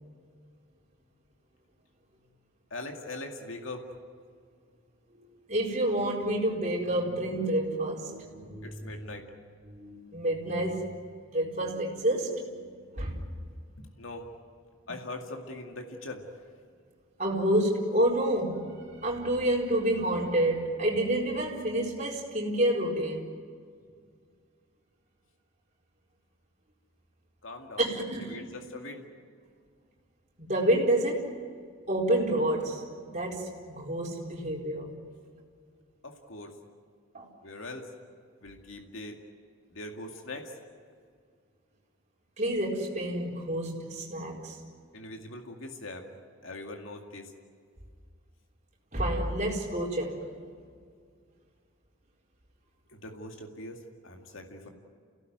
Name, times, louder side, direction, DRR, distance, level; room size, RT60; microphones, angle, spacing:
voice 1, 2.7-3.9 8.6-9.3 13.8-14.3 14.9-16.3 27.4-27.9 28.2-29.0 36.0-36.6 37.4-37.9 38.4-39.2 39.7-40.5 44.9-46.1 46.4-47.3 52.9-54.7, left 2 dB, 80° left, 3 dB, 2.2 m, -41 dB
voice 2, 5.1-9.1 9.6-10.8 11.3-12.6 12.9-13.2 17.2-18.7 19.0-23.3 27.8-28.4 30.4-31.3 31.9-32.8 33.1-34.9 37.1-37.3 42.4-44.6 48.9-50.2, right 1 dB, 35° right, -2 dB, 4.4 m, -29 dB
28.5 x 17.5 x 9.3 m, 2.1 s
head